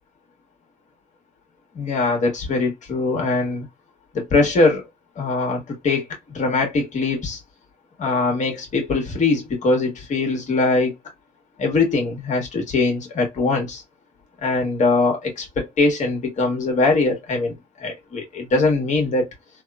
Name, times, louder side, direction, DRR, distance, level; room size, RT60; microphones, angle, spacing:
voice 1, 1.7-3.7 4.1-4.8 5.2-6.0 6.3-7.4 8.0-10.9 11.6-13.8 14.4-19.3, left 3 dB, 45° left, 1.3 m, -21 dB
3.4 x 2.0 x 2.3 m
cardioid pair, 110°, 17 cm